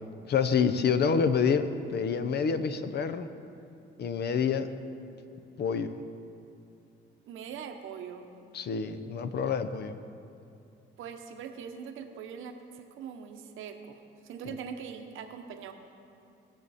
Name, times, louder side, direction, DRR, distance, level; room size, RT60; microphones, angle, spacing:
voice 1, 0.3-3.3 4.0-4.7 5.6-5.9 8.5-10.0 14.5-14.6, left 6 dB, 55° left, 10 dB, 0.7 m, -27 dB
voice 2, 7.2-8.3 11.0-15.7, right 7 dB, 85° right, 6 dB, 0.9 m, -42 dB
18.5 x 6.7 x 4.2 m, 2.6 s
cardioid pair, 90°, 20 cm